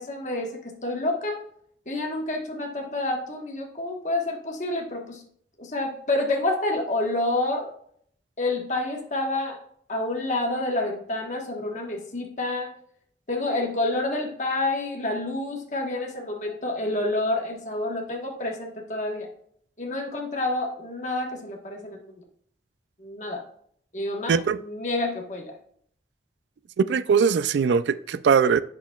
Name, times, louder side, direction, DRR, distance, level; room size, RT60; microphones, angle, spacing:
voice 1, 0.0-1.4 1.9-5.2 5.6-7.7 8.4-9.6 9.9-12.7 13.3-19.3 19.8-22.2 23.0-23.4 23.9-25.5, left 2 dB, 45° left, 1.3 m, -28 dB
voice 2, 26.8-28.6, right 6 dB, 85° right, 0.3 m, -21 dB
8.5 x 5.9 x 2.3 m
head